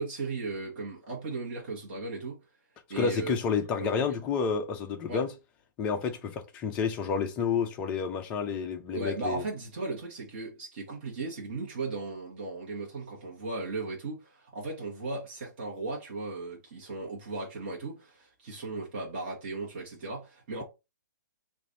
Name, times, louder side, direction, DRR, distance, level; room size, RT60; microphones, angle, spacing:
voice 1, 0.0-2.4 2.9-3.4 3.8-4.2 5.1-5.2 8.9-20.6, right 3 dB, 30° right, 1.2 m, -36 dB
voice 2, 2.9-5.3 5.8-9.4, left 6 dB, 10° left, 0.3 m, -30 dB
3.1 x 2.5 x 3.9 m
hypercardioid pair, 170°, 10 cm